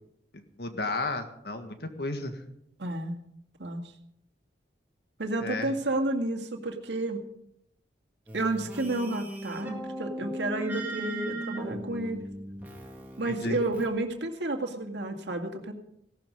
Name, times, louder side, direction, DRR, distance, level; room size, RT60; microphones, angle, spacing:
voice 1, 0.3-2.4 5.4-5.7 13.2-13.6, left 2 dB, 65° left, 7 dB, 1.7 m, -33 dB
voice 2, 2.8-3.2 3.6-3.9 5.2-7.2 8.3-12.2 13.2-15.7, right 2 dB, 85° right, 4 dB, 2.1 m, -31 dB
sound 1, 8.3-13.9, right 1 dB, 10° right, 2.2 m, -38 dB
17.0 x 12.0 x 5.3 m, 0.75 s
head